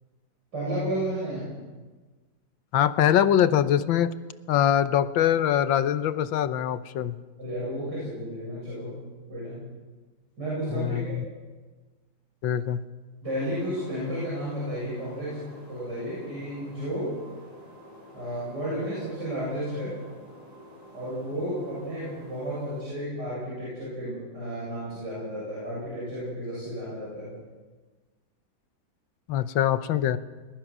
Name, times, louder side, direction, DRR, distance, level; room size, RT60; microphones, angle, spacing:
voice 1, 0.5-1.5 7.4-8.9 9.3-9.6 10.4-11.2 13.2-15.4 15.7-17.1 18.1-19.9 20.9-27.3, equal, 55° right, -8 dB, 8.6 m, -32 dB
voice 2, 2.7-4.1 4.5-7.2 10.7-11.2 12.4-12.8 29.3-30.2, left 10 dB, 75° left, 13 dB, 1.5 m, -23 dB
sound 1, 13.2-22.8, equal, 20° left, 6.7 m, -49 dB
21.0 x 20.5 x 6.1 m, 1.3 s
omnidirectional pair, 2.2 m